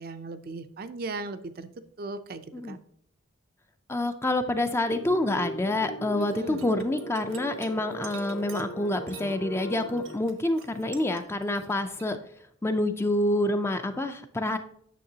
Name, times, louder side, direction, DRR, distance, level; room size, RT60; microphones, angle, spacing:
voice 1, 0.0-1.7 2.0-2.8 6.3-6.7, right 3 dB, 45° right, 10 dB, 0.5 m, -37 dB
voice 2, 3.9-12.2 12.6-14.6, left 1 dB, 10° left, 8 dB, 0.4 m, -27 dB
sound 1, 4.8-10.2, right 1 dB, 70° left, 1.1 m, -39 dB
sound 2, 6.0-9.3 9.6-12.1, right 9 dB, 75° right, 1.0 m, -49 dB
9.2 x 6.6 x 2.8 m, 0.67 s
head